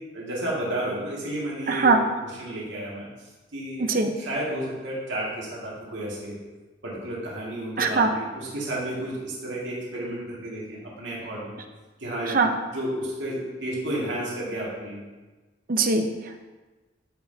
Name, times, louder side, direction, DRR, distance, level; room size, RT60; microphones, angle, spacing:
voice 1, 0.1-1.9 2.4-3.1 3.5-3.9 4.2-6.4 6.8-11.6 12.0-15.0, right 1 dB, 80° right, -5 dB, 2.1 m, -32 dB
voice 2, 1.7-2.0 3.8-4.1 7.8-8.1 12.3-12.5 15.7-16.5, right 4 dB, 50° right, 5 dB, 0.7 m, -22 dB
14.0 x 5.7 x 2.8 m, 1.2 s
head